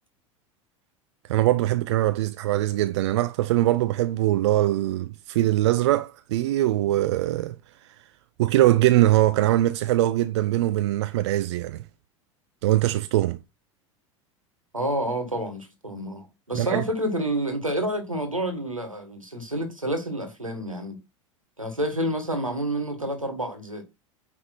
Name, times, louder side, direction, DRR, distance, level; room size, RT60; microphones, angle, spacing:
voice 1, 1.3-7.6 7.8-8.1 8.4-11.8 12.6-13.4 16.5-16.8, right 15 dB, 60° right, 0.5 m, -22 dB
voice 2, 14.7-21.0 21.6-23.8, right 1 dB, 90° right, 1.9 m, -29 dB
9.4 x 3.6 x 4.1 m
figure-of-eight pair, 80°, 17 cm